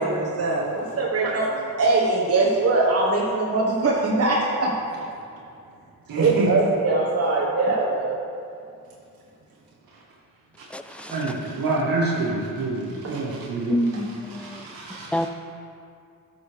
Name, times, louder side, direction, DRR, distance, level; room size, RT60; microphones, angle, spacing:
voice 1, 0.0-1.5 1.8-4.7 6.2-8.2 13.0-13.2, right 3 dB, 40° right, -4 dB, 1.5 m, -22 dB
voice 2, 6.1-6.5 10.6-13.8 14.3-15.3, right 2 dB, 75° right, -5 dB, 2.0 m, -28 dB
voice 3, 10.7-11.3 13.7-15.3, equal, 5° left, 9 dB, 0.4 m, -28 dB
13.0 x 6.9 x 3.5 m, 2.4 s
cardioid pair, 75°, 36 cm